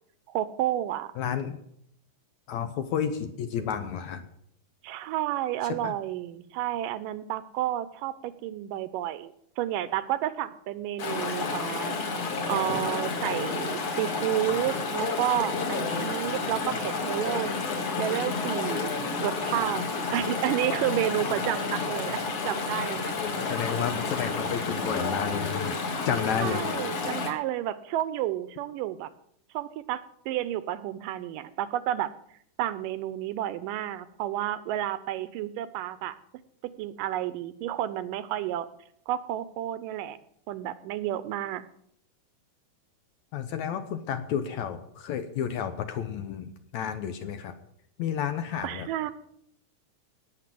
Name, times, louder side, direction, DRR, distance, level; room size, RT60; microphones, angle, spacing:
voice 1, 0.3-1.1 4.8-12.0 12.5-17.5 18.0-18.9 19.2-23.1 26.4-29.1 29.5-32.1 32.6-36.2 36.8-38.7 39.1-40.2 40.5-41.6 48.6-49.1, right 13 dB, 80° right, 15 dB, 2.2 m, -31 dB
voice 2, 1.2-1.6 2.5-4.3 5.6-6.0 23.2-25.8 26.1-26.6 43.3-47.5 48.0-49.1, left 8 dB, 70° left, 9 dB, 1.9 m, -31 dB
Chatter / Stream, 11.0-27.3, left 4 dB, 50° left, 2.7 m, -30 dB
18.0 x 6.6 x 7.6 m, 0.71 s
omnidirectional pair, 4.0 m